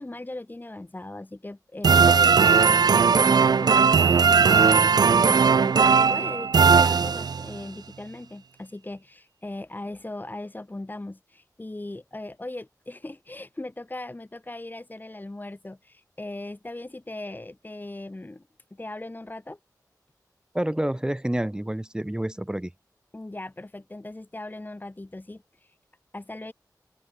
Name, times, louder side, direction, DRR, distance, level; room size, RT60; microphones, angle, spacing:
voice 1, 0.0-19.6 23.1-25.8 26.1-26.5, left 2 dB, 25° left, 1.9 m, -38 dB
sound 1, 1.8-7.6, right 6 dB, 75° right, 0.4 m, -18 dB
voice 2, 20.5-22.7, right 1 dB, 10° right, 0.6 m, -28 dB
open air
wide cardioid pair, 70°, 7 cm